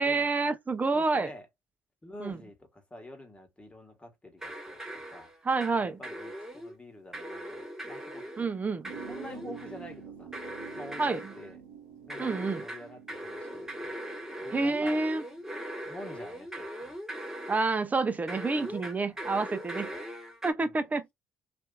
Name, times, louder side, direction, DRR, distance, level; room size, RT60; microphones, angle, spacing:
voice 1, 0.0-1.3 2.2-2.4 5.4-6.0 8.4-8.9 11.0-11.3 12.2-12.6 14.5-15.2 17.5-19.9 20.4-21.1, right 3 dB, 25° right, 0.6 m, -28 dB
voice 2, 0.9-1.5 2.0-4.8 5.1-5.3 5.7-8.5 9.1-10.3 10.7-11.6 12.1-14.0 14.4-15.0 15.8-16.9 18.6-19.0 19.8-20.0 20.6-20.7, left 1 dB, 20° left, 1.2 m, -47 dB
sound 1, 4.4-5.8 6.0-6.8 7.1-8.5 8.8-9.9 10.3-11.5 12.1-17.8 18.3-20.5, right 1 dB, 10° right, 1.1 m, -40 dB
sound 2, 8.8-15.8, right 8 dB, 85° right, 0.6 m, -48 dB
2.7 x 2.5 x 2.2 m
hypercardioid pair, 55°, 6 cm